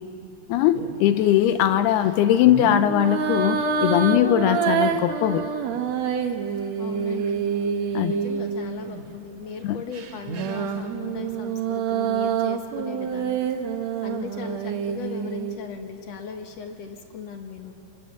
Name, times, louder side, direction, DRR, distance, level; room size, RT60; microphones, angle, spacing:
voice 1, 0.5-5.5 7.9-8.1 9.6-9.8, left 11 dB, 80° left, 11 dB, 2.6 m, -20 dB
sound 1, 0.7-1.1 2.4-9.1 9.9-15.6, right 6 dB, 75° right, 1.6 m, -27 dB
voice 2, 6.8-7.4 8.0-13.4 14.0-17.7, left 6 dB, 55° left, 4 dB, 1.9 m, -37 dB
28.0 x 25.5 x 7.0 m, 2.9 s
omnidirectional pair, 4.8 m